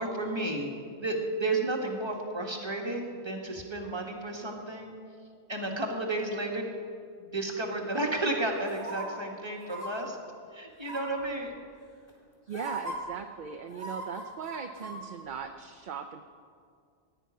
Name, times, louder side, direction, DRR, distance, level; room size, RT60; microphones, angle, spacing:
voice 1, 0.0-4.9 5.5-6.7 7.2-10.2 10.5-11.5, right 2 dB, 25° right, 0 dB, 1.7 m, -32 dB
sound 1, 8.7-9.0 9.6-9.9 10.8-11.2 12.1-12.2 12.5-13.0 13.7-15.0 15.3-15.4, right 2 dB, 35° left, 2.5 m, -38 dB
voice 2, 12.5-16.2, right 6 dB, 55° right, 6 dB, 0.7 m, -39 dB
16.0 x 6.0 x 9.3 m, 2.3 s
omnidirectional pair, 1.1 m